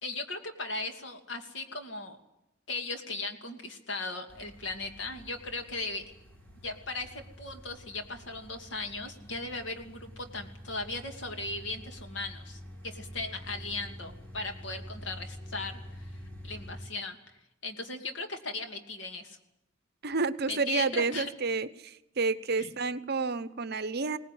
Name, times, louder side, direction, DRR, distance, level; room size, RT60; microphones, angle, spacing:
voice 1, 0.0-2.2 2.7-6.0 6.6-17.2 17.6-19.4 20.5-21.3 22.6-22.7, left 3 dB, 65° left, 5 dB, 2.5 m, -37 dB
sound 1, 4.3-16.8, equal, 10° left, 5.9 m, -47 dB
voice 2, 20.0-24.2, right 4 dB, 55° right, 14 dB, 0.9 m, -30 dB
21.0 x 18.5 x 9.3 m, 0.91 s
head